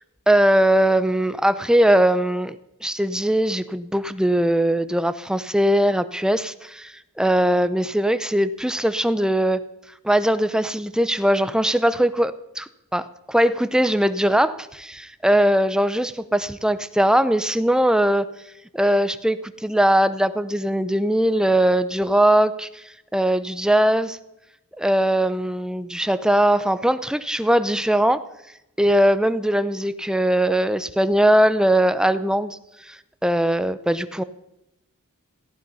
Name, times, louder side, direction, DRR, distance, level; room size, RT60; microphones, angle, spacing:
voice 1, 0.3-2.6 2.8-6.9 7.2-9.6 10.0-18.3 18.7-22.7 23.1-24.2 24.8-28.2 28.8-32.6 32.9-33.0 33.2-34.2, right 1 dB, 5° right, 12 dB, 0.6 m, -20 dB
17.0 x 14.5 x 5.5 m, 0.90 s
head